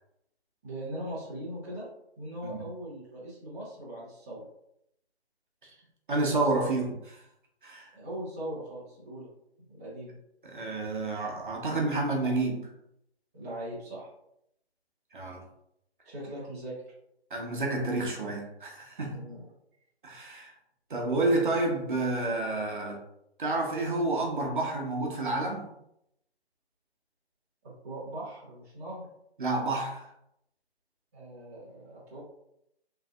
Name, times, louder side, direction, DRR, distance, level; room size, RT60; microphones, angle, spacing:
voice 1, 0.6-1.9 2.2-4.4 7.9-9.3 9.7-10.2 13.3-14.1 16.0-16.7 19.1-19.5 27.6-29.1 31.1-32.2, right 1 dB, 15° right, -9 dB, 0.8 m, -40 dB
voice 2, 6.1-7.2 7.6-7.9 10.4-12.7 15.1-15.4 17.3-19.2 20.0-20.5 20.9-23.0 23.4-25.7 29.4-30.1, right 2 dB, 50° right, 0 dB, 1.0 m, -29 dB
4.8 x 3.4 x 2.4 m, 0.77 s
figure-of-eight pair, 155°, 33 cm